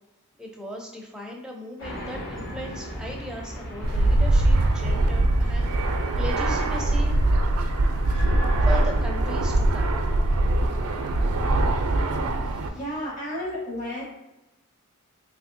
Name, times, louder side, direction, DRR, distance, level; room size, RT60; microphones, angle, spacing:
voice 1, 0.4-5.7 6.2-7.1 8.6-10.0 12.4-12.8, equal, 5° right, -1 dB, 0.4 m, -37 dB
sound 1, 1.8-12.3, equal, 65° left, 1.3 m, -37 dB
Fixed-wing aircraft airplane, 3.8-12.7, right 2 dB, 80° right, 0.4 m, -22 dB
voice 2, 12.7-14.0, equal, 35° left, -5 dB, 1.0 m, -32 dB
3.4 x 3.0 x 2.5 m, 0.93 s
head